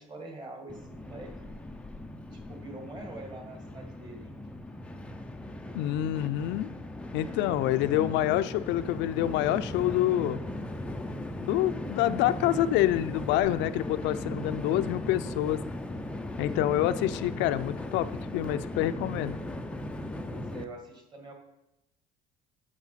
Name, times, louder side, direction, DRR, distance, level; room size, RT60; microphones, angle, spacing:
voice 1, 0.0-1.5 2.3-4.4 20.3-21.3, right 2 dB, 25° right, 3 dB, 1.9 m, -44 dB
Train, 0.7-20.6, left 1 dB, 5° left, 0.5 m, -38 dB
voice 2, 5.7-6.7 7.1-10.4 11.4-15.6 16.4-19.4, left 13 dB, 75° left, 13 dB, 0.5 m, -27 dB
9.1 x 6.4 x 5.8 m, 0.92 s
cardioid pair, 150°, 19 cm